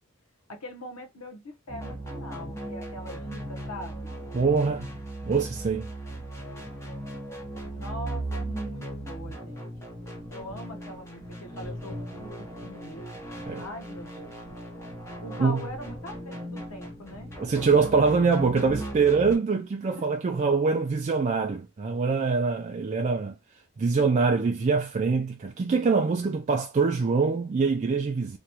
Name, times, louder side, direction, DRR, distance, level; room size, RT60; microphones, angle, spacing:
voice 1, 0.5-4.1 7.6-9.7 10.3-13.2 13.6-14.3 15.2-17.3 19.9-20.1, left 1 dB, 90° left, 0.9 m, -42 dB
sound 1, 1.7-19.4, right 1 dB, 15° left, 0.9 m, -37 dB
voice 2, 4.3-4.9 5.3-5.9 13.5-13.7 15.4-15.6 17.4-23.4 23.8-28.4, right 4 dB, 35° right, 0.3 m, -24 dB
3.0 x 2.3 x 2.7 m
head